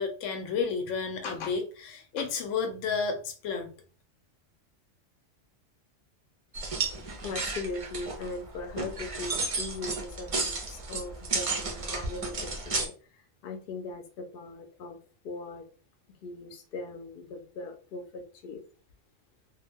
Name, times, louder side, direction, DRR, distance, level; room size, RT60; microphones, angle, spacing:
voice 1, 0.0-3.8, left 5 dB, 85° left, 6 dB, 1.0 m, -31 dB
sound 1, 6.5-12.9, right 3 dB, 50° right, 0.4 m, -33 dB
voice 2, 7.2-12.9 13.4-15.0 15.2-15.6 16.2-18.6, left 3 dB, 60° left, 4 dB, 0.6 m, -39 dB
2.3 x 2.1 x 3.3 m, 0.39 s
omnidirectional pair, 1.3 m